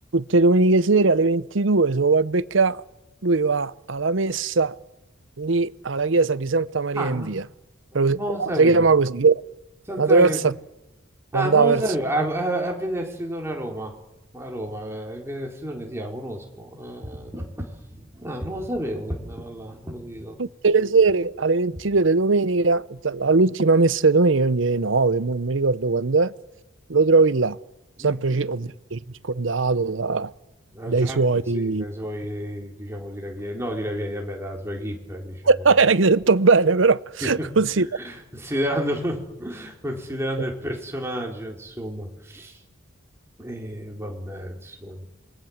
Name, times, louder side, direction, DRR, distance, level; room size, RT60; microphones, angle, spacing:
voice 1, 0.1-2.8 3.2-4.7 5.4-7.4 7.9-9.4 10.0-10.5 11.3-11.8 20.4-26.3 26.9-27.6 28.0-29.0 29.2-30.3 30.9-31.9 35.4-37.9, right 3 dB, 75° right, 0.8 m, -20 dB
voice 2, 6.9-7.3 7.9-8.9 9.9-10.4 11.3-13.9 14.3-20.4 28.0-28.7 30.7-35.4 37.2-37.5 37.7-42.6 43.4-45.1, right 1 dB, 15° right, 4.1 m, -31 dB
27.0 x 22.5 x 7.4 m
head